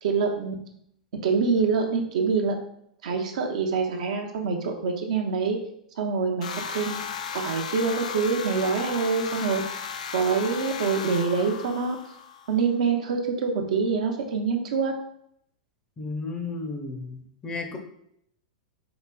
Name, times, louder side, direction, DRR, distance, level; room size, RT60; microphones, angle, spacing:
voice 1, 0.0-0.5 1.2-2.6 3.0-5.6 6.0-6.9 7.3-9.6 10.1-12.0 12.5-14.9, right 5 dB, 65° right, 3 dB, 0.6 m, -25 dB
sound 1, 6.4-12.6, left 7 dB, 70° left, 0.3 m, -35 dB
voice 2, 16.0-17.8, left 3 dB, 20° left, 4 dB, 0.5 m, -33 dB
4.8 x 2.3 x 2.2 m, 0.72 s
figure-of-eight pair, 100°, 4 cm